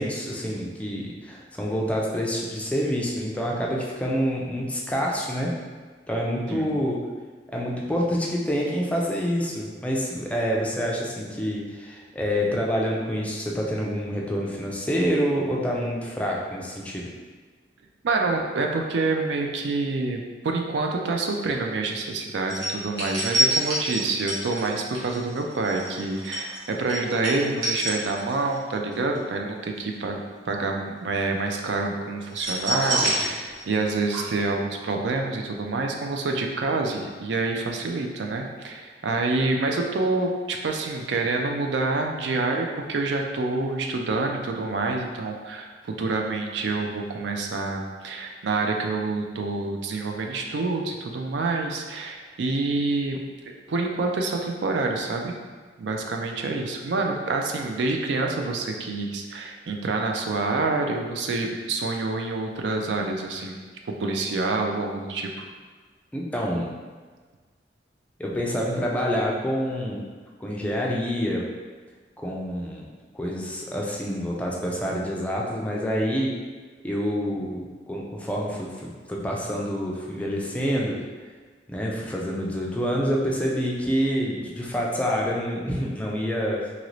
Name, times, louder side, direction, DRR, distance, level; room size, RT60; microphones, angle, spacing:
voice 1, 0.0-5.5 6.1-7.0 7.5-17.1 66.1-66.7 68.2-70.0 70.4-71.4 72.2-72.9 73.1-76.3 76.8-81.0 81.7-86.7, equal, 10° left, -3 dB, 0.3 m, -27 dB
voice 2, 18.0-45.7 46.0-55.3 55.8-63.6 64.0-65.5, right 3 dB, 70° right, 2 dB, 0.4 m, -27 dB
sound 1, 22.5-28.6 28.9-29.2 32.3-33.9 34.1-34.2, right 1 dB, 85° right, 1.0 m, -27 dB
2.9 x 2.6 x 3.1 m, 1.4 s
head